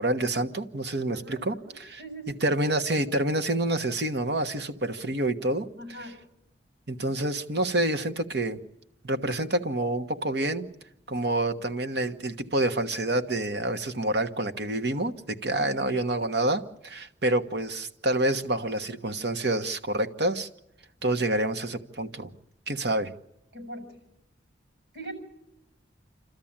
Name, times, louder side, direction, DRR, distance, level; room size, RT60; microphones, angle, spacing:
voice 1, 0.0-2.0 2.4-5.7 6.9-8.6 9.0-10.7 11.1-20.5 21.0-22.3 22.7-23.1, right 1 dB, 60° right, 1.3 m, -27 dB
voice 2, 1.1-2.3 5.8-6.1 23.5-24.0 24.9-25.1, right 1 dB, 90° right, 7.1 m, -42 dB
28.0 x 13.5 x 8.8 m
head